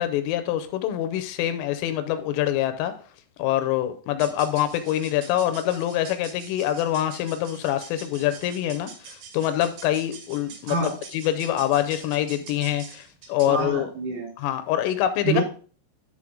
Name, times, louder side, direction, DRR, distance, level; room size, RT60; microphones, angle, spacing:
voice 1, 0.0-2.9 3.4-13.9 14.4-15.4, left 12 dB, 80° left, 9 dB, 3.1 m, -25 dB
sound 1, 4.1-13.6, right 5 dB, 70° right, 2.5 m, -45 dB
voice 2, 13.4-14.3 15.2-15.4, right 4 dB, 85° right, -2 dB, 6.1 m, -26 dB
12.0 x 4.0 x 3.7 m, 0.42 s
omnidirectional pair, 5.9 m